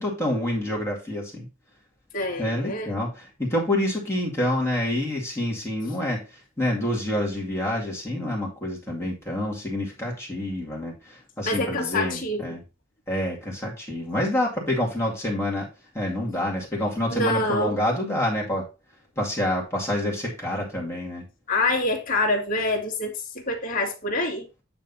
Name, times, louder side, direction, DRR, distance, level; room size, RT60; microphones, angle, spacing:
voice 1, 0.0-1.5 2.4-6.2 6.6-12.6 13.1-15.7 15.9-18.7 19.2-21.2, left 1 dB, 15° left, 2.1 m, -27 dB
voice 2, 2.1-2.9 11.4-12.5 17.1-17.8 21.5-24.5, left 2 dB, 40° left, 2.1 m, -26 dB
9.1 x 3.3 x 5.4 m
head